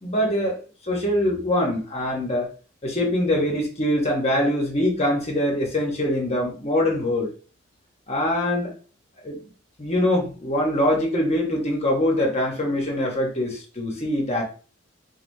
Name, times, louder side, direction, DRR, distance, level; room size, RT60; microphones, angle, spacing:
voice 1, 0.0-0.6 0.8-2.5 2.8-7.3 8.1-8.7 9.2-9.4 9.8-14.4, left 1 dB, 35° left, 0 dB, 0.9 m, -23 dB
3.9 x 3.3 x 2.6 m, 0.38 s
head